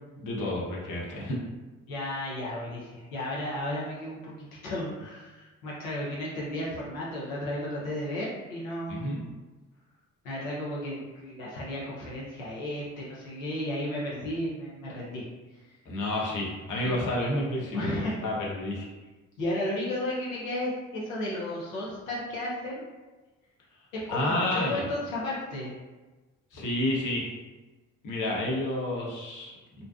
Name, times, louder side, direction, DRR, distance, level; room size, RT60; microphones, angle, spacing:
voice 1, 0.2-1.4 8.9-9.2 15.9-18.9 24.1-24.9 26.5-27.3 28.0-29.8, left 1 dB, 50° left, -4 dB, 0.9 m, -30 dB
voice 2, 1.9-9.2 10.2-15.2 15.5-15.8 16.8-16.9 17.7-18.2 19.4-22.8 23.9-25.7, left 1 dB, 85° left, -6 dB, 0.6 m, -34 dB
2.5 x 2.2 x 2.3 m, 1.2 s
hypercardioid pair, 45°, 40 cm